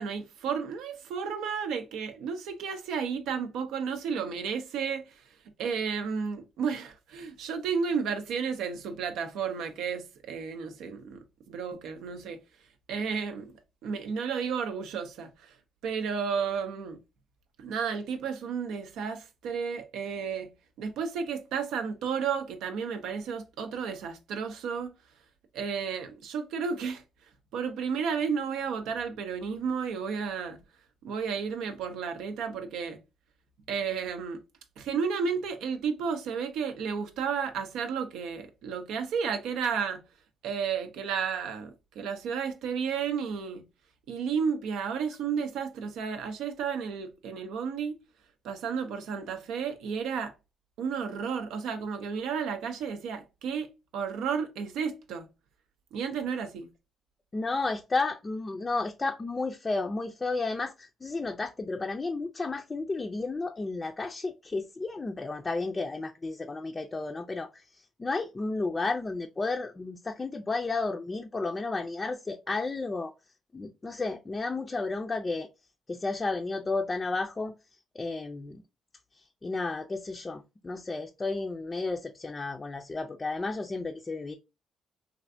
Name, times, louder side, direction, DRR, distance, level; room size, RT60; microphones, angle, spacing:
voice 1, 0.0-5.2 5.6-12.4 12.9-13.5 13.8-15.6 15.8-17.0 17.6-20.5 20.8-24.9 25.5-27.0 27.5-30.6 31.0-33.0 33.7-34.4 34.8-40.0 40.4-43.6 44.1-48.0 48.4-50.3 50.8-55.3 55.9-56.7, right 6 dB, 85° right, 0.5 m, -32 dB
voice 2, 57.3-67.6 68.0-73.1 73.5-75.5 75.9-77.5 78.0-78.6 79.4-84.3, left 3 dB, 25° left, 0.4 m, -32 dB
3.3 x 2.4 x 2.5 m
cardioid pair, 90°, 0 cm